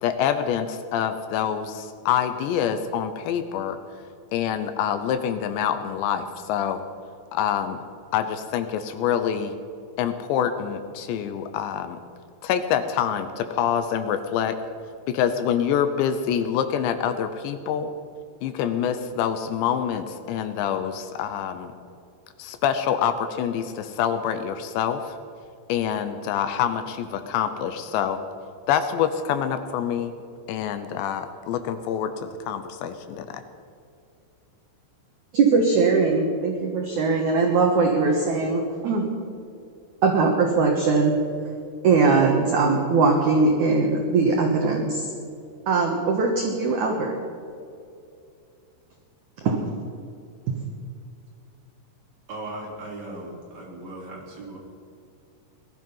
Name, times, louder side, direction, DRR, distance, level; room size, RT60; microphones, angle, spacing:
voice 1, 0.0-3.8 4.3-6.8 7.3-7.8 8.1-9.6 10.0-12.0 12.4-14.6 15.1-17.9 18.4-21.7 22.4-25.2 25.7-28.2 28.7-30.1 30.5-33.4, left 9 dB, 80° left, 9 dB, 2.9 m, -26 dB
voice 2, 35.3-39.1 40.0-41.2 41.8-45.1 45.7-47.2 49.4-49.7 50.5-50.6, right 4 dB, 70° right, 1 dB, 1.9 m, -21 dB
voice 3, 52.3-54.6, right 2 dB, 40° right, -3 dB, 4.2 m, -37 dB
19.5 x 12.5 x 5.6 m, 2.5 s
omnidirectional pair, 5.3 m